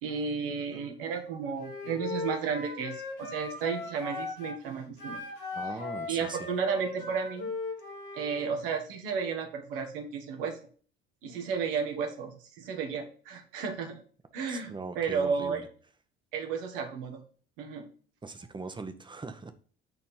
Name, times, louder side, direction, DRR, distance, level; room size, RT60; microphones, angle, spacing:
voice 1, 0.0-5.2 6.1-7.5 8.1-10.5 11.2-14.0 14.3-15.6 16.3-17.2 17.6-17.9, right 6 dB, 65° right, 4 dB, 1.8 m, -33 dB
Wind instrument woodwind instrument, 1.6-4.6 5.0-8.4, left 3 dB, 60° left, 3.4 m, -38 dB
voice 2, 5.5-6.5 14.5-15.7 18.2-19.5, right 3 dB, 15° right, 8 dB, 1.3 m, -40 dB
9.3 x 4.2 x 5.6 m, 0.43 s
figure-of-eight pair, 60°, 29 cm